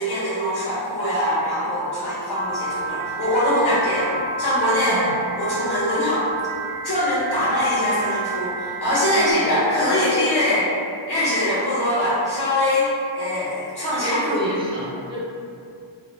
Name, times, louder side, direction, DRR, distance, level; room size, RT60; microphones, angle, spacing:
voice 1, 0.0-4.1 4.4-6.3 6.8-10.7 11.1-14.4, left 1 dB, 50° left, -11 dB, 1.2 m, -22 dB
Piano, 2.4-9.3, right 3 dB, 80° right, 0.6 m, -30 dB
voice 2, 9.2-9.5 13.8-15.2, equal, 10° right, -10 dB, 0.6 m, -29 dB
2.9 x 2.2 x 3.1 m, 2.5 s
wide cardioid pair, 90°, 50 cm